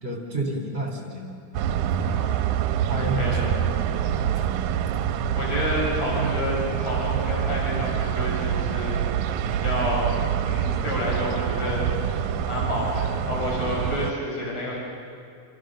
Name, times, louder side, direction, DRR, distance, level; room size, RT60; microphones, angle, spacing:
voice 1, 0.0-1.3 2.9-4.5 5.5-5.6, right 1 dB, 20° right, 0 dB, 3.3 m, -31 dB
sound 1, 1.5-14.1, right 9 dB, 75° right, 2.1 m, -26 dB
voice 2, 1.9-2.4 3.1-3.4 5.3-9.1 9.5-10.1 10.4-14.8, left 1 dB, 55° left, -3 dB, 7.0 m, -29 dB
28.5 x 28.5 x 6.5 m, 2.4 s
omnidirectional pair, 3.7 m